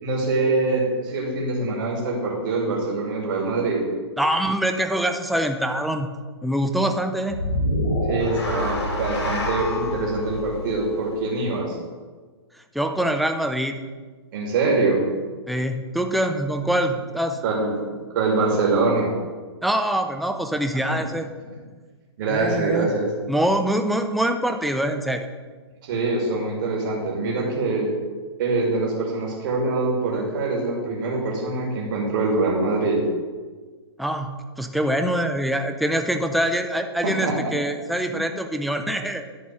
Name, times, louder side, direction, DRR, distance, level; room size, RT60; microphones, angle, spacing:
voice 1, 0.0-3.9 8.1-11.8 14.3-15.0 17.4-19.1 20.9-21.0 22.2-23.1 25.8-27.9 28.4-33.0 37.0-37.5, right 3 dB, 50° right, -2 dB, 2.5 m, -24 dB
voice 2, 4.2-6.1 6.4-7.4 12.7-13.8 15.5-17.4 19.6-21.3 22.3-22.9 23.3-25.3 34.0-39.2, right 1 dB, ahead, 6 dB, 0.4 m, -24 dB
sound 1, 7.3-11.6, left 1 dB, 75° left, 3.2 m, -27 dB
10.5 x 3.9 x 7.4 m, 1.4 s
hypercardioid pair, 140°, 14 cm